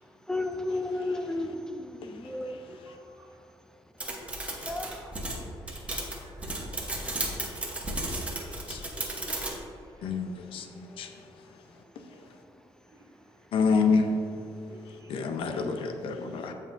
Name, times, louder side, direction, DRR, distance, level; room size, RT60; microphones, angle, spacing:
voice 1, 0.3-1.8 2.2-2.6 4.7-4.9, left 2 dB, 5° left, 5 dB, 0.4 m, -31 dB
voice 2, 2.7-3.3 6.2-6.7 7.2-7.7 9.2-9.5 12.1-12.2 12.9-13.0 14.7-15.1, right 3 dB, 35° right, 1 dB, 0.7 m, -55 dB
sound 1, 4.0-9.6, right 1 dB, 15° right, 1.0 m, -34 dB
voice 3, 10.0-10.7 11.0-11.1 13.5-14.1 15.1-16.5, left 5 dB, 65° left, 6 dB, 0.7 m, -27 dB
14.5 x 5.4 x 2.6 m, 2.5 s
cardioid pair, 175°, 10 cm